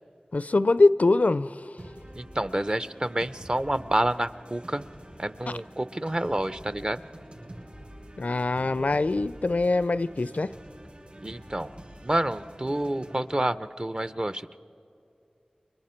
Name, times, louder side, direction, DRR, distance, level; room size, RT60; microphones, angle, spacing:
voice 1, 0.3-1.6 5.5-5.6 8.2-10.5, left 2 dB, 65° left, 0.4 m, -23 dB
sound 1, 1.8-13.2, right 1 dB, 55° right, 7.4 m, -46 dB
voice 2, 2.2-4.8 5.2-7.1 11.2-11.7 12.0-14.6, right 1 dB, 35° right, 0.6 m, -28 dB
29.5 x 23.5 x 4.4 m
wide cardioid pair, 50°, 3 cm